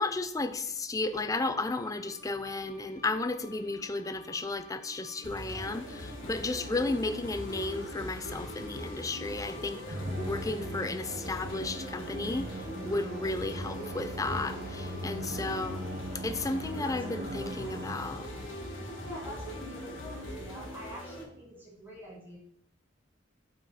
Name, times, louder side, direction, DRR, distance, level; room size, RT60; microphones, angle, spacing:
voice 1, 0.0-18.3, left 2 dB, 20° left, 0.4 m, -34 dB
sound 1, 1.0-20.2, left 3 dB, 45° left, 0.8 m, -54 dB
sound 2, 5.2-21.2, equal, 80° left, 1.5 m, -41 dB
Musical instrument, 9.9-18.4, equal, 55° right, 1.1 m, -40 dB
voice 2, 13.6-14.0 16.8-17.3 19.0-22.4, equal, 10° right, 1.9 m, -46 dB
5.6 x 5.3 x 4.3 m
head